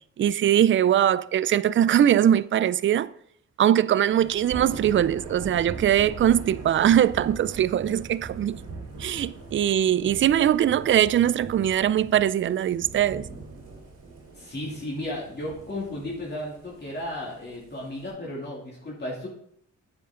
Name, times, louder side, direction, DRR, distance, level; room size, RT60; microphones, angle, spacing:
voice 1, 0.2-3.1 3.6-8.6 9.0-13.2, right 10 dB, 40° right, 0.4 m, -21 dB
Thunder / Rain, 4.1-18.1, right 3 dB, 85° right, 4.4 m, -41 dB
voice 2, 14.3-19.3, left 1 dB, 35° left, 2.8 m, -34 dB
9.3 x 7.9 x 3.8 m
cardioid pair, 105°, 30 cm